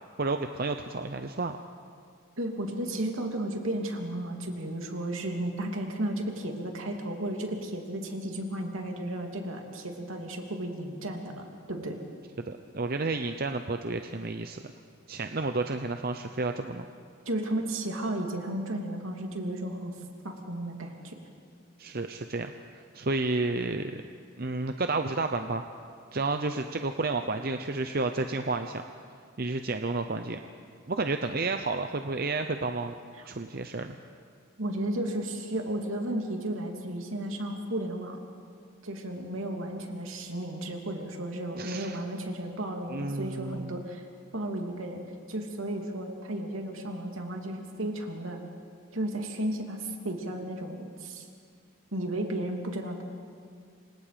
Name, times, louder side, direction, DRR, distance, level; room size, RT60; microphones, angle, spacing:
voice 1, 0.2-1.6 12.5-14.6 15.1-16.8 21.8-22.5 22.9-24.0 24.4-25.6 26.1-28.8 29.4-30.4 30.9-33.0 33.3-34.0 41.6-42.0 42.9-43.8, right 3 dB, 45° right, 7 dB, 0.7 m, -31 dB
voice 2, 2.4-12.0 17.3-19.9 20.2-21.2 33.2-33.3 34.6-38.2 38.8-44.0 44.3-45.0 45.3-48.4 48.9-51.3 51.9-53.0, right 1 dB, 75° right, 2 dB, 3.0 m, -34 dB
28.0 x 25.5 x 5.2 m, 2.2 s
head